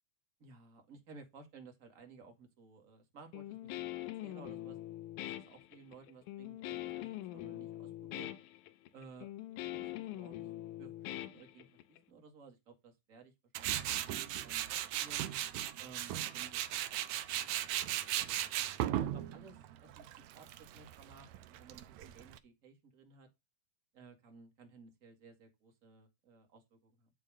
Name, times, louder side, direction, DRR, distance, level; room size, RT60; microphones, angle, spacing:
voice 1, 0.4-3.9 4.2-4.8 5.2-8.3 8.9-9.3 9.7-10.5 10.8-15.2 15.8-18.8 19.1-23.3 23.9-27.1, right 4 dB, 30° right, 2.1 m, -57 dB
Guitar, 3.3-12.0, left 15 dB, 80° left, 2.2 m, -43 dB
Tools, 13.5-22.4, right 12 dB, 75° right, 1.9 m, -37 dB
11.5 x 4.2 x 5.0 m
omnidirectional pair, 3.6 m